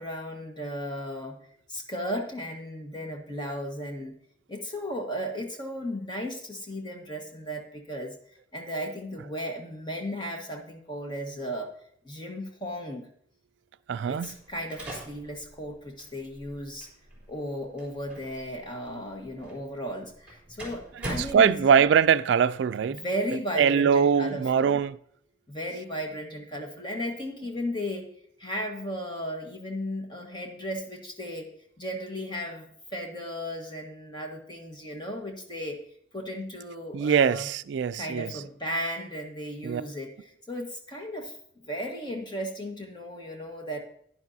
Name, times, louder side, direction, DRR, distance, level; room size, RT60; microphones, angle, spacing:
voice 1, 0.0-1.4 1.7-4.2 4.5-8.2 8.5-11.7 12.0-13.1 14.1-16.9 17.3-21.6 22.9-24.8 25.5-28.1 28.4-35.8 36.1-37.5 37.9-43.8, equal, 25° left, 1.4 m, -35 dB
voice 2, 13.9-14.4 21.0-23.0 23.6-25.0 36.9-38.4 39.6-39.8, right 7 dB, 70° right, 0.3 m, -22 dB
sound 1, 14.2-22.0, right 1 dB, 5° right, 3.6 m, -43 dB
10.5 x 10.5 x 2.7 m
head